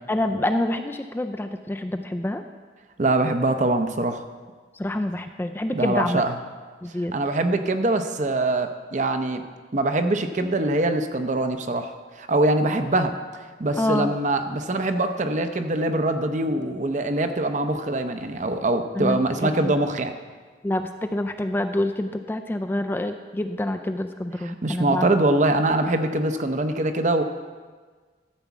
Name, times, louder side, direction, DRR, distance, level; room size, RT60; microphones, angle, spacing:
voice 1, 0.1-2.4 4.8-6.2 6.8-7.1 13.8-14.1 19.0-19.7 20.6-25.1, left 1 dB, 10° left, 7 dB, 0.3 m, -27 dB
voice 2, 3.0-4.2 5.7-6.4 7.1-9.4 9.7-13.1 13.6-20.1 24.4-27.2, right 2 dB, 45° right, 7 dB, 0.7 m, -23 dB
13.5 x 4.6 x 7.2 m, 1.5 s
head